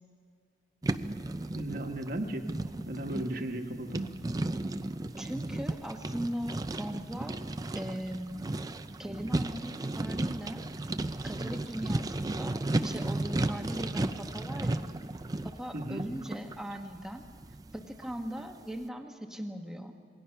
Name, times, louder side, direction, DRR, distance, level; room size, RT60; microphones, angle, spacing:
sound 1, 0.8-18.5, right 2 dB, 20° right, 0.5 m, -34 dB
voice 1, 1.5-2.5 2.8-4.2 15.7-16.1, right 1 dB, 50° right, 5 dB, 1.3 m, -35 dB
voice 2, 5.2-7.4 7.7-8.6 9.0-10.7 11.2-14.9 15.4-17.3 17.7-19.9, equal, 5° right, 3 dB, 1.1 m, -39 dB
27.0 x 20.5 x 5.8 m, 2.2 s
head